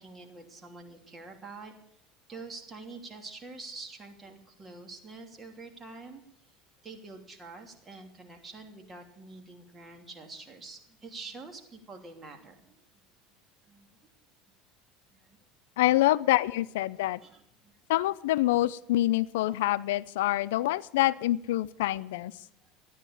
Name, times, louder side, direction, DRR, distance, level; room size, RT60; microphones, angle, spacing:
voice 1, 0.0-1.7 2.3-6.2 6.8-12.8 13.7-13.9 15.1-15.4 15.9-16.0 17.2-17.7, right 3 dB, 25° right, 3 dB, 2.9 m, -46 dB
voice 2, 15.8-17.2 17.9-22.3, left 16 dB, 85° left, 17 dB, 0.5 m, -26 dB
13.5 x 10.0 x 7.2 m, 0.77 s
supercardioid pair, 115°, 0 cm